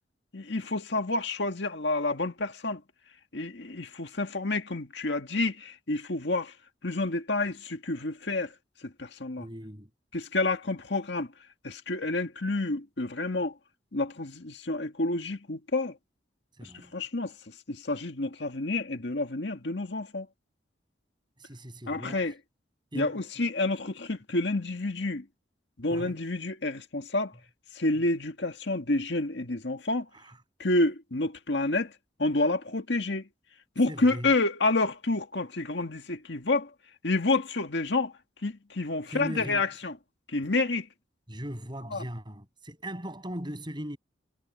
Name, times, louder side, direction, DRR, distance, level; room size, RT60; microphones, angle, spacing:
voice 1, 0.3-2.8 3.3-6.5 6.8-8.5 8.8-9.5 10.1-11.3 11.6-13.6 13.9-16.0 16.6-20.3 21.9-22.4 22.9-25.3 25.8-27.3 27.7-30.1 30.6-31.9 32.2-33.3 33.8-36.7 37.0-38.1 38.4-40.0 40.3-40.9 41.9-42.0, left 2 dB, 70° left, 1.9 m, -29 dB
voice 2, 9.4-9.9 16.6-16.9 21.4-22.3 22.9-23.2 25.9-26.2 30.2-30.3 33.9-34.3 39.1-39.7 41.3-44.0, equal, 25° right, 6.9 m, -39 dB
head